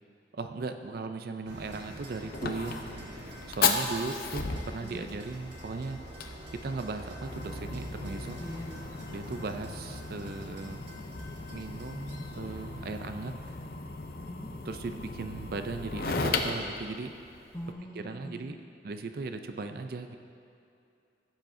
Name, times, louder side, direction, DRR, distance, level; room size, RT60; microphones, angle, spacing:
voice 1, 0.3-2.8 3.5-6.0 6.6-8.4 9.1-10.8 11.5-13.3 14.7-17.1 18.0-18.6 18.8-20.2, right 3 dB, 55° right, 7 dB, 0.4 m, -37 dB
Fire, 1.5-17.7, left 4 dB, 55° left, 0.6 m, -36 dB
sound 1, 1.5-13.5, equal, 80° right, 1.4 m, -45 dB
voice 2, 8.4-8.8 14.2-14.5 17.5-18.6, equal, 20° left, 2 dB, 0.7 m, -42 dB
15.5 x 7.5 x 2.6 m, 2.7 s
head